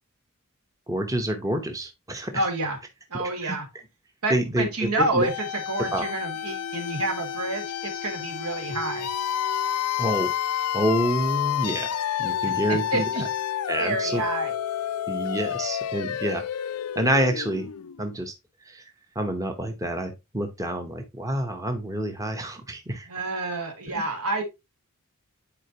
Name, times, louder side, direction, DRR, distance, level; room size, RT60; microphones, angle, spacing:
voice 1, 0.9-2.3 3.4-3.6 4.3-5.3 5.9-6.0 10.0-10.3 10.7-13.1 13.7-14.2 15.1-16.5 16.9-17.7 18.0-18.3 18.7-18.8 19.1-23.1, right 1 dB, 15° right, 0.8 m, -27 dB
voice 2, 2.3-2.8 3.1-3.7 4.2-9.1 12.4-13.2 13.8-14.5 23.1-24.4, right 2 dB, 80° right, 1.9 m, -28 dB
sound 1, 5.2-18.0, left 10 dB, 90° left, 0.4 m, -30 dB
9.8 x 4.4 x 2.8 m
head